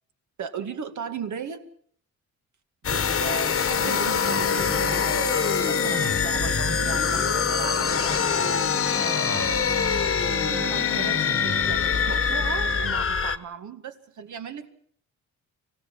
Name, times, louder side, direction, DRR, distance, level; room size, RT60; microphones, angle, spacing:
voice 1, 0.4-1.7 2.8-8.6 8.9-9.6 10.5-14.7, right 6 dB, 60° right, 9 dB, 2.2 m, -37 dB
sound 1, 2.8-13.4, left 7 dB, 40° left, 1.3 m, -24 dB
sound 2, 3.8-13.0, right 3 dB, 40° right, 1.5 m, -35 dB
25.5 x 16.5 x 7.3 m, 0.62 s
cardioid pair, 105°, 33 cm